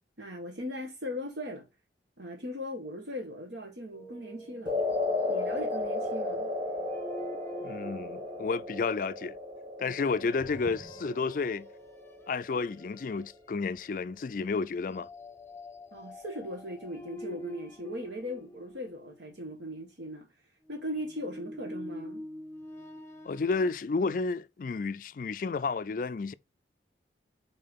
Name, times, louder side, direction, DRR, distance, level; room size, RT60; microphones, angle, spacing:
voice 1, 0.2-1.6 2.2-4.7 5.2-6.5 9.9-10.0 15.9-20.3 20.7-22.2, equal, 75° right, 1.4 m, -39 dB
sound 1, 3.9-9.2 10.3-11.6 12.0-12.2 12.8-13.3 14.9-19.4 20.6-23.7, left 1 dB, 15° left, 0.7 m, -45 dB
sound 2, 4.6-13.0, left 2 dB, 25° right, 1.4 m, -34 dB
voice 2, 7.6-9.4 9.8-11.7 12.3-15.1 23.2-26.3, left 4 dB, 50° left, 0.3 m, -31 dB
5.5 x 4.3 x 5.3 m
head